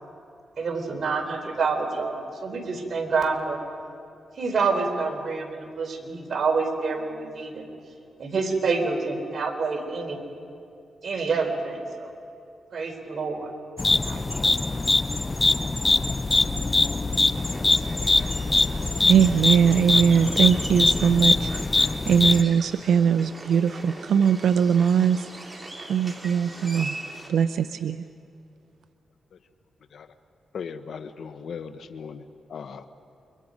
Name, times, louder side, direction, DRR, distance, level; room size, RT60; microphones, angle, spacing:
voice 1, 0.6-3.6 4.4-7.7 8.2-10.2 11.0-12.1 12.7-13.5 13.9-14.5, right 4 dB, 55° right, 2 dB, 4.2 m, -27 dB
sound 1, 13.8-22.4, left 3 dB, 25° left, 0.7 m, -23 dB
sound 2, 17.3-27.3, right 2 dB, 20° right, 3.6 m, -40 dB
voice 2, 19.1-21.5 22.0-25.6 25.9-27.0 27.3-28.1, right 7 dB, 80° right, 10 dB, 0.6 m, -21 dB
voice 3, 30.5-32.2 32.5-32.8, left 6 dB, 70° left, 10 dB, 1.2 m, -37 dB
29.5 x 24.5 x 5.3 m, 2.5 s
cardioid pair, 90°, 0 cm